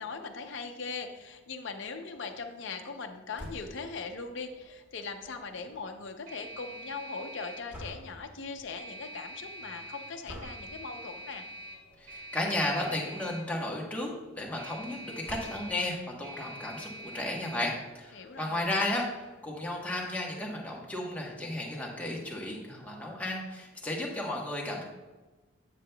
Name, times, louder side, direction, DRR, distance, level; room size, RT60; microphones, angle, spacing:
voice 1, 0.0-11.5 18.1-18.7, left 4 dB, 55° left, 5 dB, 0.6 m, -40 dB
sound 1, 3.4-3.9 7.7-8.3 10.2-10.7 11.9-12.2 12.6-12.7 12.9-13.0 15.2-15.8, equal, 10° right, 1.7 m, -44 dB
sound 2, 3.7-20.4, right 1 dB, 80° right, 1.8 m, -47 dB
voice 2, 12.0-24.8, left 1 dB, 5° left, -2 dB, 1.0 m, -34 dB
9.3 x 6.7 x 2.2 m, 1.2 s
head